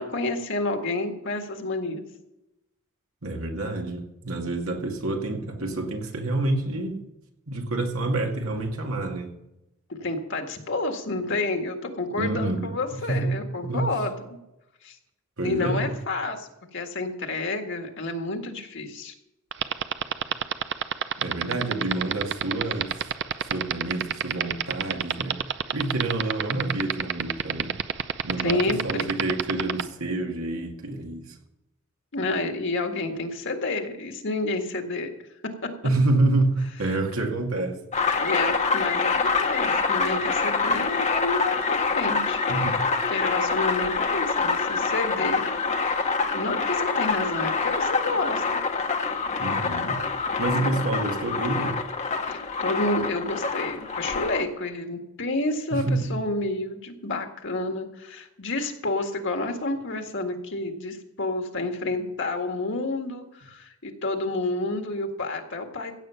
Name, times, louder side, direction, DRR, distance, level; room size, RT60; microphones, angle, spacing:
voice 1, 0.0-2.1 9.9-14.2 14.8-15.0 15.4-19.1 28.4-29.1 32.1-35.1 38.2-42.8 43.1-45.5 45.8-48.6 50.5-50.8 52.2-65.9, left 2 dB, 60° left, 4 dB, 1.8 m, -30 dB
voice 2, 3.2-7.0 7.5-9.3 12.2-13.9 15.4-16.0 21.2-23.1 23.4-25.4 25.7-27.7 28.2-31.3 35.8-37.8 42.5-42.8 49.4-50.0 50.4-51.8 55.7-56.1, right 2 dB, 80° right, 2 dB, 2.2 m, -28 dB
sound 1, 19.5-29.8, right 8 dB, 55° right, 0.6 m, -25 dB
sound 2, 37.9-54.4, left 4 dB, 35° left, 1.1 m, -26 dB
16.0 x 8.1 x 5.8 m, 0.90 s
head